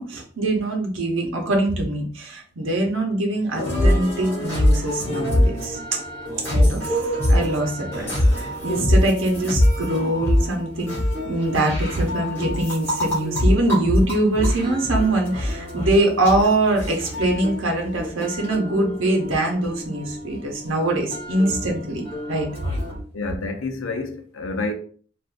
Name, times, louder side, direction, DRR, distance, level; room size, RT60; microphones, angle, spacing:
voice 1, 0.0-6.0 6.5-11.0 11.2-22.5, right 2 dB, 85° right, 0.8 m, -23 dB
sound 1, 3.5-23.0, left 1 dB, 10° left, 1.4 m, -24 dB
voice 2, 23.1-24.7, left 3 dB, 90° left, 0.6 m, -28 dB
3.6 x 2.5 x 2.5 m
head